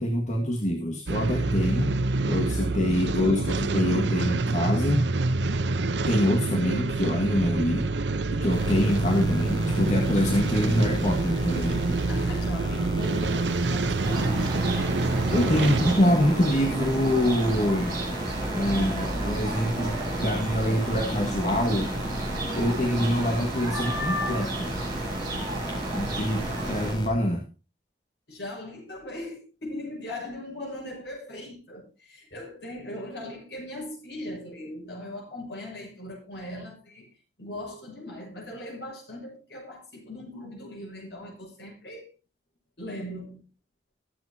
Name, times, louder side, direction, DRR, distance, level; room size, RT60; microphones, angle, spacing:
voice 1, 0.0-1.9 2.3-5.1 6.1-7.9 8.3-12.0 15.3-18.0 18.5-21.9 22.5-24.7 25.9-27.5, equal, 45° left, 0 dB, 1.9 m, -25 dB
sound 1, 1.1-16.0, right 3 dB, 90° right, 0.8 m, -27 dB
sound 2, 8.5-27.1, equal, 25° left, 4.2 m, -35 dB
voice 2, 12.1-14.6 15.6-15.8 26.3-26.8 28.3-37.1 37.4-42.1 42.8-43.4, left 1 dB, 75° left, 0 dB, 6.8 m, -39 dB
sound 3, 14.0-26.9, right 1 dB, 25° right, 7.8 m, -32 dB
22.0 x 7.8 x 2.8 m, 0.31 s
head